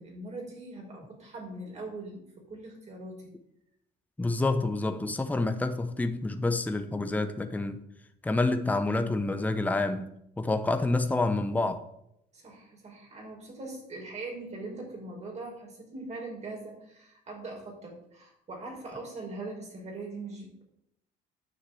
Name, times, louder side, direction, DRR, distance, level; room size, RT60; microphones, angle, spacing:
voice 1, 0.0-3.3 12.3-20.6, right 2 dB, 40° right, 5.4 m, -41 dB
voice 2, 4.2-7.8 8.2-10.1 10.4-11.8, left 2 dB, 10° left, 0.8 m, -28 dB
9.8 x 6.4 x 7.8 m
cardioid pair, 110°, 17 cm